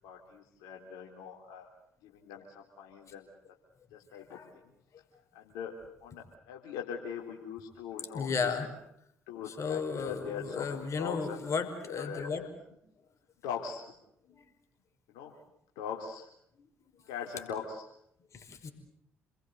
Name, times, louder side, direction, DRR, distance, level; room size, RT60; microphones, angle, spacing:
voice 1, 0.0-1.7 2.0-3.3 3.9-4.6 5.3-5.7 6.0-8.3 9.3-11.4 11.8-12.5 13.4-13.8 15.1-15.3 15.8-16.3 17.1-17.8, left 7 dB, 75° left, 0 dB, 3.6 m, -41 dB
voice 2, 4.1-4.6 8.1-8.7 9.5-12.5 14.4-14.5 18.3-18.7, left 5 dB, 50° left, 6 dB, 5.2 m, -34 dB
29.0 x 21.5 x 8.2 m, 0.73 s
hypercardioid pair, 50°, 7 cm